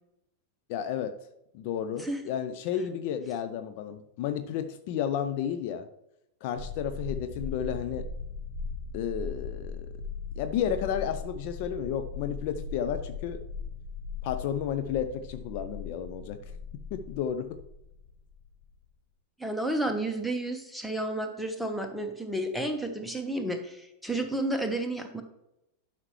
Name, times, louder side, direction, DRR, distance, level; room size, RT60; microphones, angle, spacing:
voice 1, 0.7-1.2 1.5-5.9 6.4-8.1 8.9-9.9 10.4-13.4 14.2-16.4 16.9-17.6, left 9 dB, 45° left, 9 dB, 0.5 m, -32 dB
sound 1, 6.5-18.8, left 4 dB, 65° left, 1.7 m, -39 dB
voice 2, 19.4-25.2, right 1 dB, ahead, 5 dB, 1.1 m, -31 dB
11.0 x 5.8 x 3.1 m, 0.87 s
figure-of-eight pair, 90°, 0 cm